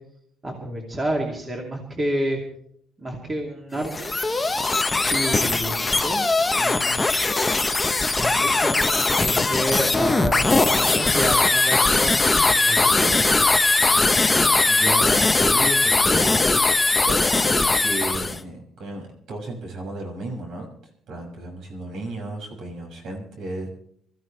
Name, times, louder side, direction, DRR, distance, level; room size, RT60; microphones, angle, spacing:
voice 1, 0.4-2.4 3.0-4.1 5.1-6.2 6.5-7.1 8.1-8.9 9.2-13.2, right 1 dB, 20° right, 0 dB, 2.7 m, -29 dB
sound 1, 3.8-18.4, left 3 dB, 10° left, 0.8 m, -20 dB
voice 2, 14.7-16.3 17.0-20.7 21.1-23.7, right 1 dB, 65° right, 1 dB, 6.4 m, -33 dB
26.0 x 14.5 x 3.3 m, 0.67 s
cardioid pair, 175°, 0 cm